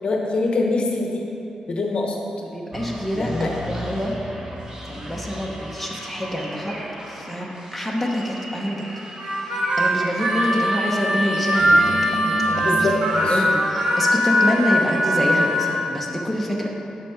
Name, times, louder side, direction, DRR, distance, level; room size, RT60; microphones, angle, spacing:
voice 1, 0.0-1.2 1.7-2.2 3.2-3.5 12.6-12.9 13.2-13.4, left 3 dB, 50° left, 0 dB, 0.8 m, -23 dB
voice 2, 2.4-4.2 4.8-6.8 7.1-8.8 9.4-16.8, equal, ahead, -2 dB, 0.9 m, -27 dB
sound 1, 2.7-13.3, right 1 dB, 35° right, 1.1 m, -35 dB
Harmonica, 9.2-15.8, equal, 90° right, 1.5 m, -21 dB
7.4 x 5.5 x 4.8 m, 3.0 s
wide cardioid pair, 110°, 2 cm